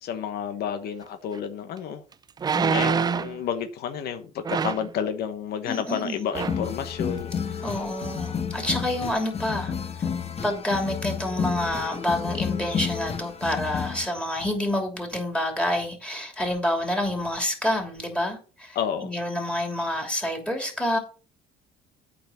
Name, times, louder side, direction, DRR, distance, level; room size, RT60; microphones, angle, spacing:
voice 1, 0.0-2.0 2.5-7.8 18.7-19.1, left 8 dB, 70° left, 1.2 m, -31 dB
sound 1, 1.3-1.4 2.4-3.4 4.4-4.9 5.9-6.0 6.3-6.7 7.2-7.3, right 6 dB, 25° right, 0.3 m, -26 dB
voice 2, 5.7-6.2 7.6-9.7 10.0-10.1 10.4-21.0, left 1 dB, 5° left, 2.9 m, -28 dB
sound 2, 6.3-14.1, left 7 dB, 35° left, 1.2 m, -31 dB
8.7 x 5.2 x 6.5 m
cardioid pair, 110°, 17 cm